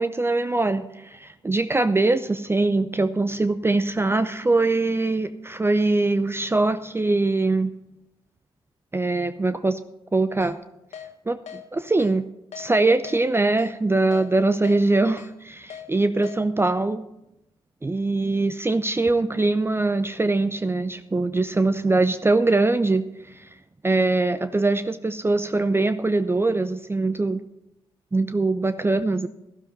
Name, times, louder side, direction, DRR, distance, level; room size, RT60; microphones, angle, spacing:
voice 1, 0.0-7.7 8.9-9.8 10.1-10.6 11.3-12.2 12.6-17.0 17.8-23.5 23.8-27.4 28.1-29.3, right 2 dB, 20° right, 11 dB, 0.6 m, -22 dB
Keyboard (musical), 10.4-10.5 10.9-11.1 11.5-11.6 12.0-12.1 12.5-12.7 13.1-13.2 13.6-13.7 14.1-14.3 14.6-14.8 15.2-15.3 15.7-15.8 16.2-16.4, left 8 dB, 65° left, 1.3 m, -39 dB
12.5 x 12.0 x 4.1 m, 0.89 s
hypercardioid pair, 45°, 12 cm